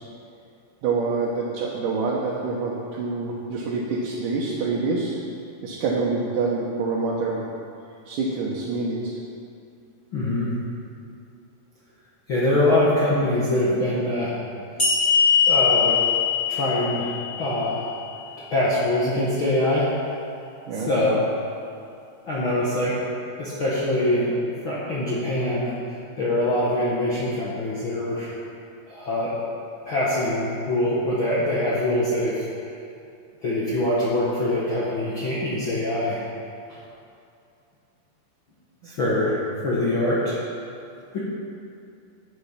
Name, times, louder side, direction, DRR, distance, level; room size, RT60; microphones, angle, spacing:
voice 1, 0.8-5.2 5.6-7.4 8.1-9.2 20.7-20.9, right 3 dB, 70° right, -4 dB, 2.6 m, -26 dB
voice 2, 10.1-10.5 12.3-14.3 15.5-16.0 16.5-17.9 18.5-19.9 20.7-21.2 22.3-23.0 23.4-24.4 24.6-25.8 26.2-28.3 28.9-29.3 29.9-32.5 33.4-36.2 36.7-36.8 38.8-40.4 41.1-41.2, left 1 dB, 45° left, -8 dB, 1.9 m, -23 dB
sound 1, 14.8-18.2, left 6 dB, 15° left, 2.0 m, -22 dB
11.0 x 10.5 x 5.8 m, 2.5 s
omnidirectional pair, 4.0 m